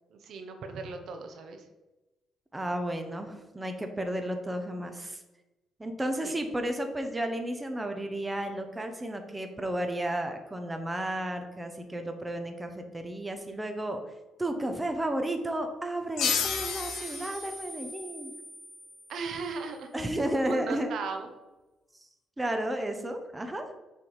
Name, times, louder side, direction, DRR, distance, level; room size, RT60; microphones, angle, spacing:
voice 1, 0.1-1.7 6.2-6.3 19.1-20.1 20.4-21.3, right 4 dB, 70° right, 5 dB, 0.9 m, -37 dB
voice 2, 2.5-5.2 5.8-14.0 14.4-18.3 19.9-20.9 22.4-23.7, right 1 dB, 15° right, 5 dB, 0.8 m, -33 dB
sound 1, 16.2-19.4, left 6 dB, 80° left, 0.9 m, -33 dB
6.8 x 3.5 x 4.7 m, 1.0 s
cardioid pair, 90°, 0 cm